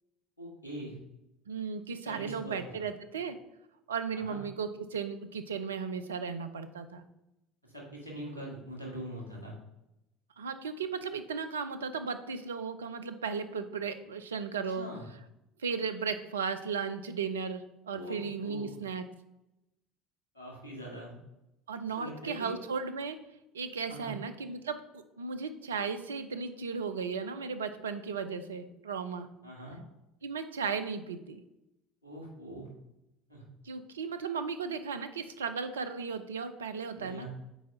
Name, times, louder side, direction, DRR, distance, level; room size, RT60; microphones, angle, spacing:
voice 1, 0.4-1.0 2.0-2.5 4.1-4.4 7.6-9.6 14.8-15.0 17.9-18.7 20.3-21.1 21.9-22.6 23.9-24.2 29.4-29.8 32.0-32.7 33.3-33.4 36.9-37.3, right 1 dB, 90° left, -3 dB, 1.8 m, -43 dB
voice 2, 1.5-3.4 3.9-7.0 10.4-14.9 15.6-19.0 21.7-23.2 23.5-29.3 30.2-31.4 33.6-37.3, right 5 dB, 75° right, 9 dB, 0.4 m, -35 dB
4.7 x 4.0 x 5.8 m, 0.91 s
figure-of-eight pair, 65°, 0 cm